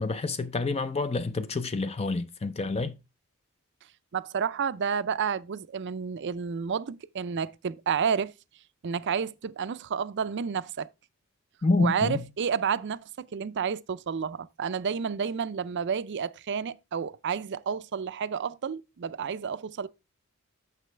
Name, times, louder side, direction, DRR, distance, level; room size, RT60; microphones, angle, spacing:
voice 1, 0.0-2.9 11.6-12.2, left 3 dB, 30° left, 0.5 m, -28 dB
voice 2, 4.1-8.3 8.8-10.9 11.8-19.9, right 6 dB, 55° right, 0.5 m, -30 dB
9.2 x 6.6 x 3.3 m
head